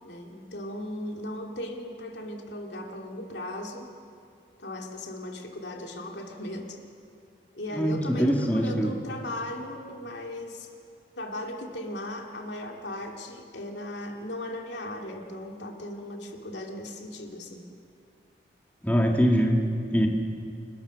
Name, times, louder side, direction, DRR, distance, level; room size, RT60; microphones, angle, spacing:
voice 1, 0.0-3.9 4.6-6.8 7.5-10.7 11.2-17.7, left 1 dB, 90° left, 2 dB, 2.7 m, -37 dB
voice 2, 7.7-8.9 18.8-20.1, equal, 10° left, 1 dB, 1.8 m, -23 dB
29.0 x 20.0 x 6.4 m, 2.4 s
head